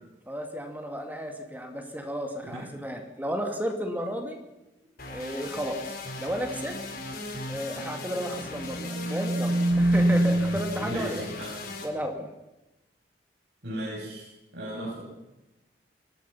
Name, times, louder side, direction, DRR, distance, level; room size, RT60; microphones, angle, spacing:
voice 1, 0.3-4.4 5.1-6.8 7.5-11.3 11.8-12.3, equal, 10° right, 4 dB, 2.4 m, -33 dB
sound 1, 5.0-11.8, left 2 dB, 55° left, 4.4 m, -38 dB
sound 2, 8.5-11.0, right 1 dB, 50° right, 0.9 m, -25 dB
voice 2, 10.7-11.5 13.6-15.0, right 1 dB, 75° right, -7 dB, 8.0 m, -36 dB
23.5 x 19.5 x 5.9 m, 1.0 s
head